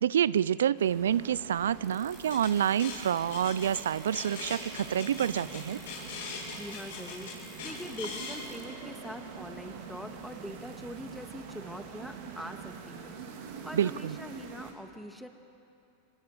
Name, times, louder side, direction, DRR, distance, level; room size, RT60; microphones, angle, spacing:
voice 1, 0.0-5.8 13.7-14.2, right 9 dB, 80° right, 20 dB, 0.5 m, -28 dB
sound 1, 0.8-14.7, right 6 dB, 60° right, 3.8 m, -45 dB
sound 2, 1.8-8.6, right 5 dB, 20° right, 3.5 m, -57 dB
sound 3, 2.1-8.4, left 5 dB, 70° left, 7.9 m, -41 dB
voice 2, 6.5-7.3 7.6-13.2 13.6-15.3, equal, ahead, 5 dB, 2.1 m, -43 dB
25.0 x 21.0 x 8.2 m, 2.6 s
hypercardioid pair, 100°, 0 cm